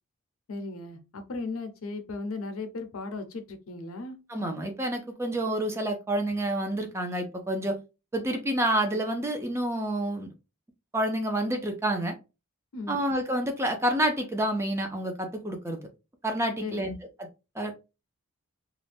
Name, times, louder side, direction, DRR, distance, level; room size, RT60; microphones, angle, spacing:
voice 1, 0.5-4.2 12.7-13.0 16.6-16.9, left 3 dB, 70° left, 0.5 m, -36 dB
voice 2, 4.3-7.8 8.1-10.3 10.9-12.1 12.9-15.8 16.2-17.0 17.6-17.7, right 1 dB, 10° right, 0.4 m, -28 dB
2.4 x 2.1 x 3.3 m
head